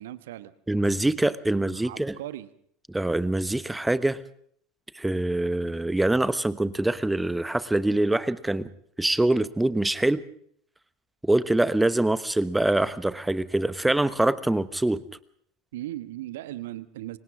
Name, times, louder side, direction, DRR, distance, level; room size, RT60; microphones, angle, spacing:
voice 1, 0.0-0.5 1.8-2.5 15.7-17.2, right 14 dB, 60° right, 15 dB, 1.2 m, -37 dB
voice 2, 0.7-2.2 2.9-4.2 4.9-8.7 9.0-10.2 11.2-15.0, right 2 dB, 5° right, 16 dB, 1.1 m, -24 dB
30.0 x 24.0 x 3.7 m, 0.64 s
figure-of-eight pair, 75°, 0 cm